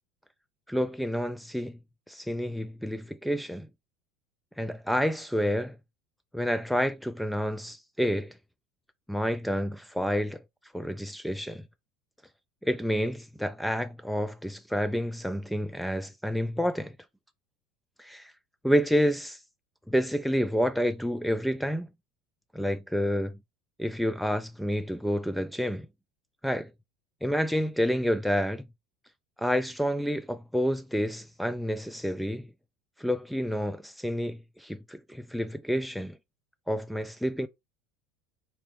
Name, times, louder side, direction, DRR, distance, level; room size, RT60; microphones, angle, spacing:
voice 1, 0.7-1.8 2.1-3.7 4.6-5.7 6.3-8.3 9.1-10.4 10.7-11.6 12.6-17.0 18.0-18.3 18.6-19.4 19.9-21.9 22.5-23.3 23.8-25.9 26.4-26.7 27.2-28.6 29.4-32.5 33.0-36.2 36.7-37.5, equal, ahead, 0.3 m, -29 dB
4.2 x 2.5 x 3.3 m
hypercardioid pair, 75°, 0 cm